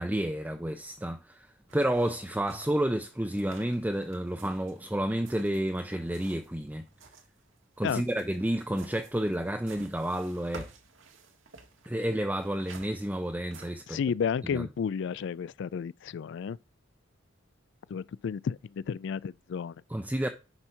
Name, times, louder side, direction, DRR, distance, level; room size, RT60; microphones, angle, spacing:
voice 1, 0.0-6.9 7.8-10.7 11.9-14.0 14.5-14.7 19.9-20.3, right 1 dB, 10° right, 0.6 m, -30 dB
sound 1, 1.7-6.6 6.9-13.8, right 3 dB, 75° right, 1.8 m, -52 dB
voice 2, 13.9-16.6 17.9-19.8, left 6 dB, 65° left, 0.3 m, -32 dB
9.8 x 4.5 x 5.7 m
head